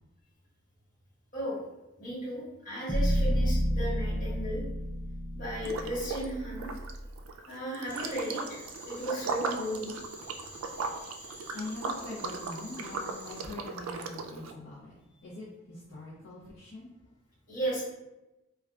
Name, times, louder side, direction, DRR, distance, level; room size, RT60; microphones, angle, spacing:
voice 1, 2.0-4.6 5.3-6.7 7.4-9.9 17.5-17.8, right 1 dB, 40° left, -8 dB, 1.4 m, -35 dB
sound 1, 2.9-7.1, equal, ahead, 0.4 m, -30 dB
Liquid, 5.6-6.3 6.6-14.5, right 4 dB, 85° right, 0.3 m, -37 dB
sound 2, 7.9-13.4, right 1 dB, 15° left, 1.2 m, -48 dB
voice 2, 11.3-14.9 15.2-16.9, left 2 dB, 60° left, -8 dB, 0.6 m, -43 dB
3.6 x 2.2 x 2.2 m, 0.99 s
head